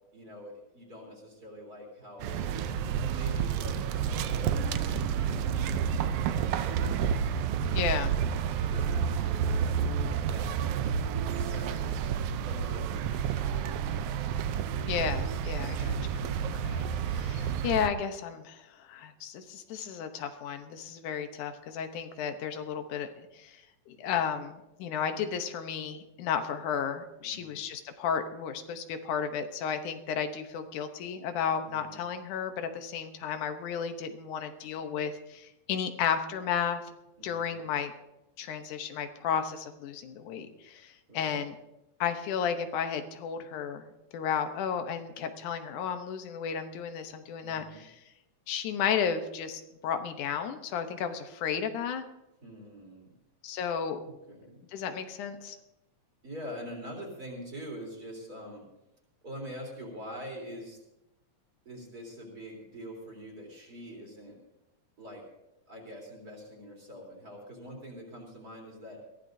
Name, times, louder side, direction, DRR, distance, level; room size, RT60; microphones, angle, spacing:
voice 1, 0.1-2.3 2.6-9.8 10.1-10.8 11.2-12.1 12.4-14.3 23.9-24.2 27.2-27.6 31.6-32.0 37.2-37.6 41.1-41.5 47.4-47.8 52.4-53.1 54.0-54.6 56.2-58.7 59.2-60.8 61.7-64.4 65.0-65.3 65.7-69.0, equal, 30° right, -1 dB, 4.0 m, -45 dB
sound 1, 2.2-17.9, right 7 dB, 80° right, 1.3 m, -30 dB
voice 2, 7.7-8.1 14.9-16.9 17.1-23.6 23.9-36.8 37.2-37.9 38.4-41.6 42.0-47.9 48.5-52.0 53.4-54.0 54.7-55.6, left 7 dB, 90° left, 7 dB, 2.5 m, -33 dB
21.5 x 15.5 x 2.7 m, 0.92 s
omnidirectional pair, 3.4 m